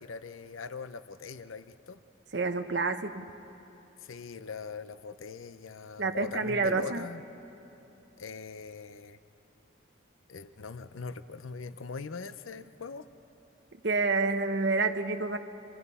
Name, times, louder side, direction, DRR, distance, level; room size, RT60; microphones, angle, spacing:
voice 1, 0.0-2.0 4.0-7.2 8.2-9.2 10.3-13.1, left 5 dB, 85° left, 12 dB, 0.7 m, -41 dB
voice 2, 2.3-3.3 6.0-7.1 13.8-15.4, right 3 dB, 55° right, 7 dB, 0.9 m, -28 dB
28.0 x 25.0 x 5.6 m, 2.9 s
head